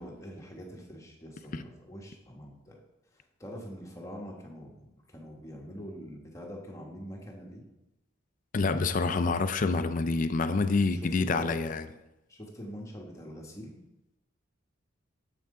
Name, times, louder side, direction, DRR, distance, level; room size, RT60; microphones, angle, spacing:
voice 1, 0.0-2.8 3.1-7.6 10.9-11.6 12.3-13.8, equal, 15° left, -1 dB, 1.1 m, -44 dB
voice 2, 8.5-11.9, left 3 dB, 40° left, 11 dB, 0.4 m, -27 dB
7.6 x 5.8 x 3.7 m, 0.94 s
head